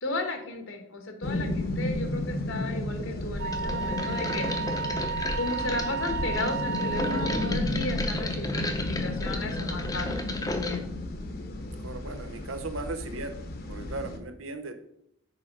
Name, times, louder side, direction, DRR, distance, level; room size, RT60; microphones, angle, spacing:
voice 1, 0.0-4.5 5.3-10.9, left 2 dB, 75° left, 5 dB, 1.3 m, -35 dB
sound 1, 1.2-14.2, left 1 dB, 50° left, 0.9 m, -32 dB
Wind instrument woodwind instrument, 3.4-7.6, right 6 dB, 55° right, 0.3 m, -33 dB
sound 2, 3.5-10.8, left 2 dB, 20° left, 0.7 m, -35 dB
voice 2, 11.8-13.4 13.7-14.8, right 3 dB, 85° right, 9 dB, 0.9 m, -37 dB
6.5 x 5.0 x 5.3 m, 0.76 s
head